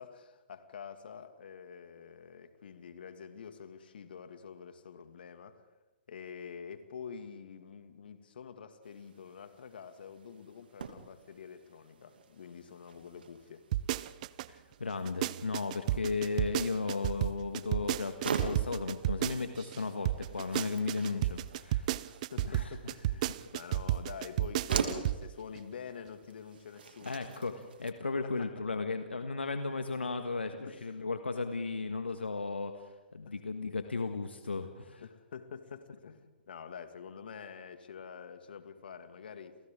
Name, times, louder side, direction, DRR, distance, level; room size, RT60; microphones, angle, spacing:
voice 1, 0.0-5.7 6.1-13.6 15.9-16.0 22.0-27.3 28.2-28.5 30.6-31.0 33.2-33.3 34.6-39.6, left 6 dB, 60° left, 9 dB, 2.3 m, -47 dB
sound 1, 8.8-27.9, right 6 dB, 65° right, 2.6 m, -44 dB
sound 2, 13.7-14.5 14.9-19.8 20.0-25.2 25.5-25.6, right 14 dB, 40° right, 0.7 m, -32 dB
voice 2, 14.5-21.9 22.4-22.7 27.0-35.0, left 4 dB, 80° left, 7 dB, 1.6 m, -35 dB
30.0 x 29.5 x 3.8 m, 1.1 s
figure-of-eight pair, 125°, 6 cm